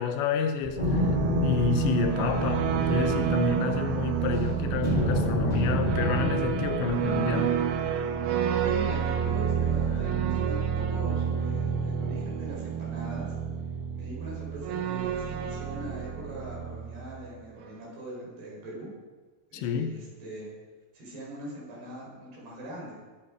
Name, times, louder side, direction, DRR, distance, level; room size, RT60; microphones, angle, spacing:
voice 1, 0.0-7.6 19.5-20.0, left 7 dB, 85° left, 3.1 m, -30 dB
sound 1, 0.6-17.3, right 8 dB, 90° right, 3.3 m, -29 dB
sound 2, 0.8-4.3 4.8-8.2, left 2 dB, 10° left, 2.8 m, -30 dB
voice 2, 8.6-13.3 13.9-18.9 19.5-20.5 20.9-23.0, right 1 dB, 65° right, 6.8 m, -41 dB
20.5 x 9.4 x 4.9 m
omnidirectional pair, 5.0 m